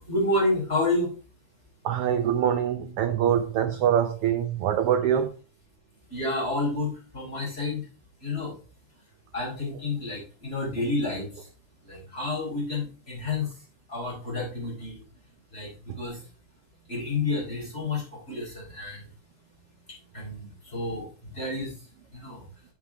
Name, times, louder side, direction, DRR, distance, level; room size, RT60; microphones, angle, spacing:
voice 1, 0.1-1.1 6.1-7.9 8.2-8.5 9.3-11.5 11.8-13.5 13.9-15.0 15.5-16.2 16.9-19.1 20.1-21.8 22.1-22.4, left 2 dB, 20° left, -5 dB, 4.4 m, -30 dB
voice 2, 1.8-5.4, right 9 dB, 75° right, 7 dB, 1.3 m, -24 dB
7.3 x 6.1 x 4.8 m, 0.37 s
omnidirectional pair, 3.4 m